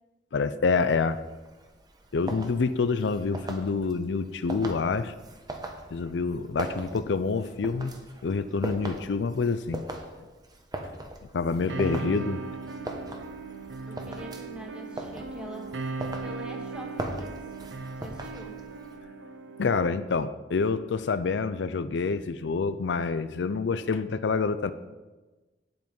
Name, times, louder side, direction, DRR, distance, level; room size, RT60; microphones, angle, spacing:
voice 1, 0.3-1.2 2.1-5.1 5.9-7.9 8.2-9.8 11.3-12.4 19.6-24.7, left 4 dB, 75° left, 13 dB, 0.5 m, -27 dB
sound 1, 0.8-19.0, right 1 dB, 25° right, 1.0 m, -41 dB
voice 2, 11.5-12.1 13.8-15.9 16.2-17.4 18.0-18.6, right 1 dB, 5° right, 1 dB, 1.6 m, -44 dB
sound 2, 11.7-19.7, right 3 dB, 85° right, 0.9 m, -38 dB
9.4 x 7.8 x 5.3 m, 1.2 s
head